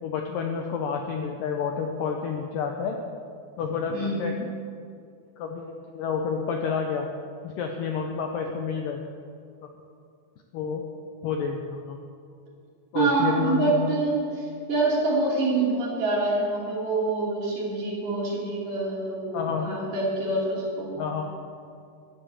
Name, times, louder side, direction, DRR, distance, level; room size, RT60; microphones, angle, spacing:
voice 1, 0.0-3.0 3.6-4.3 5.4-7.1 7.4-9.0 10.5-10.8 11.2-12.0 12.9-13.9 19.3-19.7 21.0-21.3, left 6 dB, 80° left, 3 dB, 2.0 m, -29 dB
voice 2, 3.9-4.4 12.9-20.9, right 2 dB, 55° right, -4 dB, 4.1 m, -26 dB
13.0 x 10.0 x 7.2 m, 2.3 s
omnidirectional pair, 4.9 m